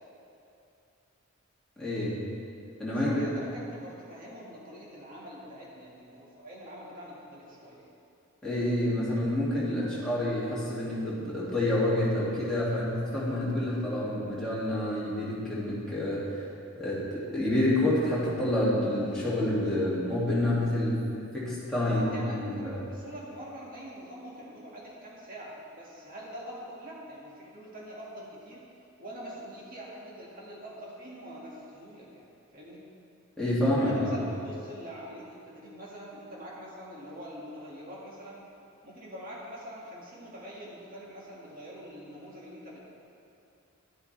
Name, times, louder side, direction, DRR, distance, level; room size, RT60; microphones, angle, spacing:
voice 1, 1.8-2.1 2.8-3.1 8.4-16.4 16.8-21.0 21.3-22.7 33.4-34.2, left 1 dB, 5° left, -10 dB, 2.4 m, -28 dB
voice 2, 2.9-7.9 9.8-10.3 21.7-28.6 29.0-32.8 33.7-38.4 38.8-42.8, equal, 40° right, -5 dB, 2.0 m, -44 dB
10.5 x 10.5 x 3.3 m, 2.7 s
head